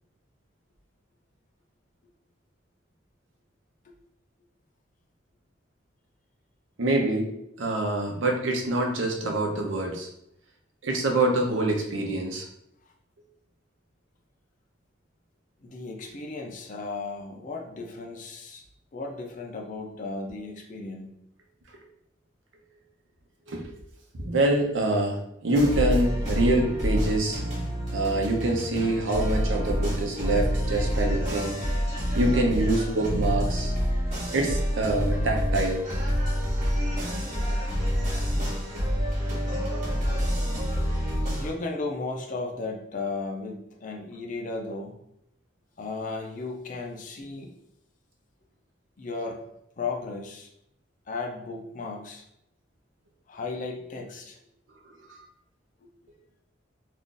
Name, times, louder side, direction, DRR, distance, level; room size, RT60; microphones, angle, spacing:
voice 1, 6.8-7.3 7.6-10.1 10.8-12.4 23.5-23.7 24.2-27.4 27.9-31.6 32.2-33.7 34.3-35.8 38.7-38.8 39.3-39.4 39.7-39.8, right 2 dB, 85° right, 1 dB, 0.7 m, -25 dB
voice 2, 15.6-18.6 18.9-21.1 41.3-45.0 45.8-47.5 49.0-49.4 49.8-50.5 51.1-52.2 53.3-54.4, left 3 dB, 45° left, 2 dB, 0.5 m, -35 dB
sound 1, 25.5-41.5, equal, 35° right, 1.1 m, -27 dB
2.5 x 2.4 x 3.7 m, 0.78 s
head